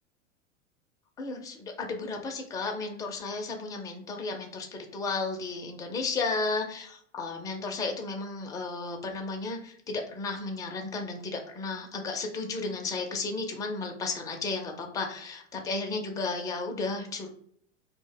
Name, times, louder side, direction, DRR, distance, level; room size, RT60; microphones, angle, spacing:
voice 1, 1.2-4.7 4.9-17.3, left 3 dB, 10° left, 2 dB, 0.3 m, -33 dB
2.4 x 2.1 x 3.8 m, 0.64 s
hypercardioid pair, 95°, 37 cm